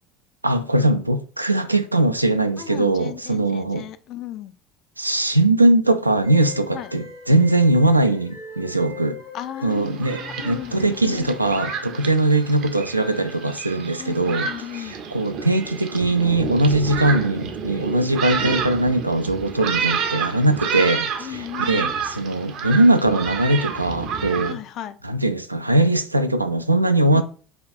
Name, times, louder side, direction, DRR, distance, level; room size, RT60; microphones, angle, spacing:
voice 1, 0.4-3.9 5.0-9.2 9.6-14.5 14.8-24.6 25.0-27.2, right 2 dB, 85° right, 0.3 m, -20 dB
voice 2, 2.6-4.5 6.7-6.9 9.3-11.3 14.0-15.0 21.2-21.9 24.5-25.0 27.1-27.2, left 12 dB, 50° left, 0.4 m, -35 dB
sound 1, 6.2-16.4, left 3 dB, 75° left, 2.0 m, -42 dB
Thunderstorm, 9.7-24.5, right 6 dB, 50° right, 0.6 m, -29 dB
3.4 x 2.3 x 4.2 m
figure-of-eight pair, 65°, 0 cm